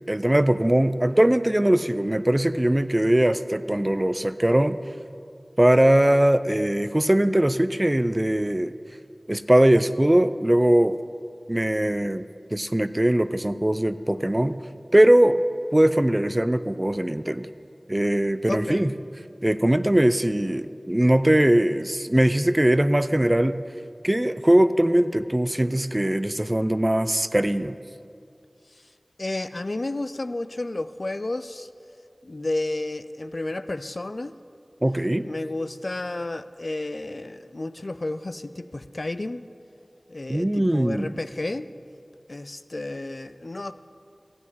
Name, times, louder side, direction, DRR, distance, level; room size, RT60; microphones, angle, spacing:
voice 1, 0.1-4.8 5.6-8.7 9.3-11.0 11.5-14.6 14.9-15.4 15.7-17.5 17.9-18.9 19.4-23.6 24.0-27.8 34.8-35.3 40.3-41.2, right 1 dB, 25° right, 12 dB, 0.4 m, -21 dB
voice 2, 18.5-18.8 29.2-31.7 32.2-34.4 35.2-39.4 40.1-41.7 42.3-43.7, left 2 dB, 65° left, 12 dB, 0.4 m, -31 dB
14.0 x 9.6 x 5.6 m, 2.4 s
wide cardioid pair, 45°, 0 cm